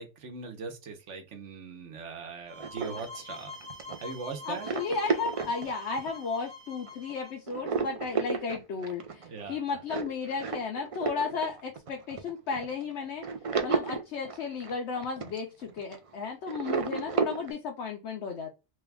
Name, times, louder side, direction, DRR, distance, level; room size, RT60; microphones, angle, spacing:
voice 1, 0.0-3.5 4.0-4.7 9.2-9.6, right 4 dB, 90° right, 1.2 m, -40 dB
sound 1, 2.5-7.4, left 3 dB, 15° right, 0.7 m, -46 dB
sound 2, 2.6-6.4 6.9-7.1 7.5-16.1 16.5-17.5, right 5 dB, 65° right, 0.3 m, -33 dB
voice 2, 4.4-13.3 13.6-18.5, left 5 dB, 75° left, 0.9 m, -34 dB
3.3 x 2.3 x 3.3 m
omnidirectional pair, 1.2 m